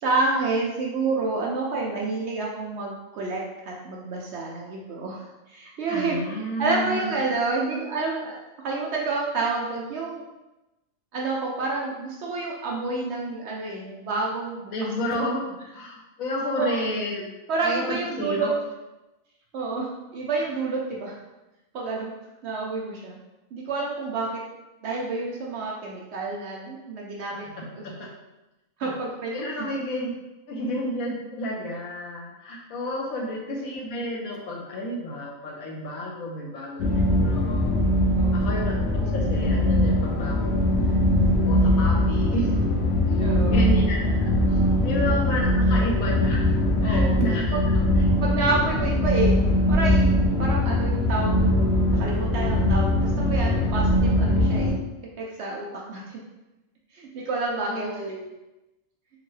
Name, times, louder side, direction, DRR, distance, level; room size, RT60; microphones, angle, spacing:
voice 1, 0.0-8.4 8.6-10.2 11.1-14.9 16.6-16.9 17.5-18.5 19.5-21.2 21.7-22.1 22.4-23.2 23.5-24.3 24.8-27.4 27.7-27.8 28.8-29.7 38.1-38.3 43.2-43.7 44.8-44.9 46.8-47.2 47.5-47.6 48.2-49.4 49.7-51.6 51.9-54.8 55.2-56.2 56.9-57.9, right 3 dB, 65° right, -2 dB, 0.7 m, -29 dB
voice 2, 5.9-7.1 14.7-15.4 15.7-17.3 17.6-18.5 27.3-28.1 28.8-28.9 29.3-30.1 30.5-37.8 38.3-41.0 41.4-42.5 43.1-47.9 57.7-58.3, equal, 80° left, -2 dB, 1.2 m, -31 dB
sound 1, 36.8-54.7, left 1 dB, 60° left, 0.7 m, -21 dB
3.6 x 2.1 x 3.1 m, 1.0 s
omnidirectional pair, 1.4 m